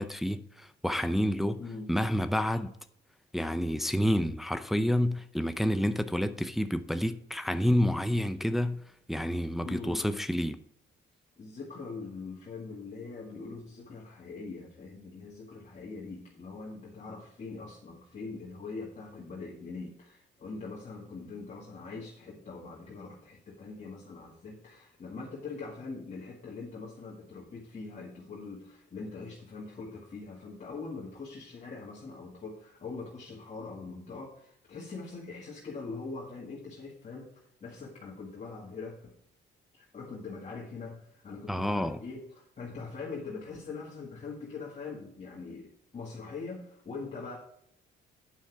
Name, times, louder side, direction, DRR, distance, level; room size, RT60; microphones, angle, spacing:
voice 1, 0.0-1.6 1.9-2.7 3.3-8.8 9.1-10.6 41.5-42.0, equal, ahead, 0.5 m, -29 dB
voice 2, 1.6-1.9 9.6-10.0 11.4-37.3 37.6-39.1 39.7-47.4, left 4 dB, 35° left, 1.9 m, -42 dB
9.3 x 5.6 x 4.7 m
cardioid pair, 90°, 20 cm